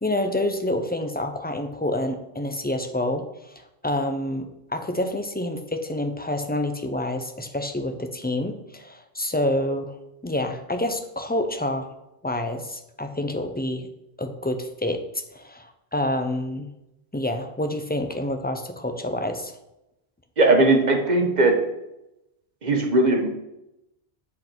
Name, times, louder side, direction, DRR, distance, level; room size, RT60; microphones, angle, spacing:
voice 1, 0.0-3.2 3.8-9.9 10.2-11.9 12.2-13.9 14.2-15.0 15.3-16.7 17.1-19.5, left 1 dB, 10° left, 6 dB, 0.5 m, -27 dB
voice 2, 20.4-21.6 22.6-23.3, right 2 dB, 45° right, 3 dB, 1.2 m, -18 dB
7.7 x 5.9 x 4.5 m, 0.89 s
omnidirectional pair, 1.1 m